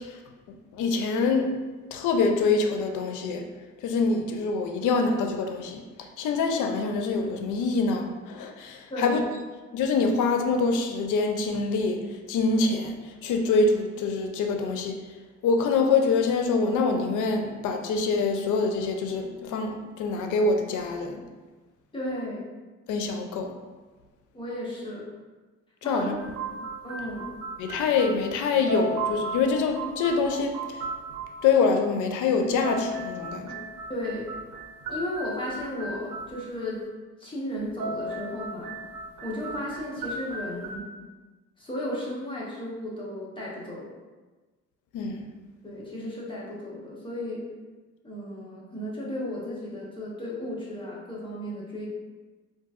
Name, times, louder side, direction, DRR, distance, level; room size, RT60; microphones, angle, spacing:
voice 1, 0.7-1.6 1.9-3.4 3.8-5.8 6.2-9.2 9.7-12.0 12.3-15.0 15.4-21.2 22.9-23.5 25.8-26.1 27.6-30.8 31.4-33.6 44.9-45.3, left 4 dB, 85° left, 4 dB, 0.5 m, -25 dB
voice 2, 21.9-22.4 24.3-25.1 25.8-26.5 26.8-27.3 33.9-34.3 34.9-36.8 37.2-38.7 39.2-40.9 41.6-43.9 45.6-47.5 48.0-51.9, left 1 dB, 15° left, -6 dB, 1.1 m, -34 dB
sound 1, 26.2-28.4 28.7-31.4 32.4-36.6 37.6-40.8, right 2 dB, 90° right, 0.7 m, -36 dB
3.8 x 2.6 x 2.4 m, 1.3 s
cardioid pair, 90°, 30 cm